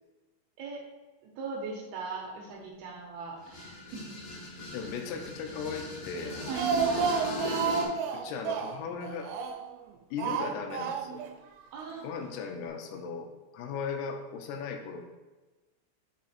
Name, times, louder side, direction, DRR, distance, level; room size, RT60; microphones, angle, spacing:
voice 1, 1.2-4.2 6.5-7.1 11.7-12.0, right 5 dB, 75° right, -1 dB, 2.4 m, -38 dB
sound 1, 3.4-7.9, left 1 dB, 60° left, 2.3 m, -38 dB
voice 2, 4.7-6.4 8.1-9.3 10.1-11.2 12.0-15.1, left 6 dB, 80° left, 4 dB, 2.4 m, -37 dB
Speech, 6.2-9.8 10.2-11.3 11.6-11.7 12.0-12.1, right 6 dB, 90° right, 3.0 m, -31 dB
6.6 x 3.7 x 4.2 m, 1.2 s
omnidirectional pair, 5.3 m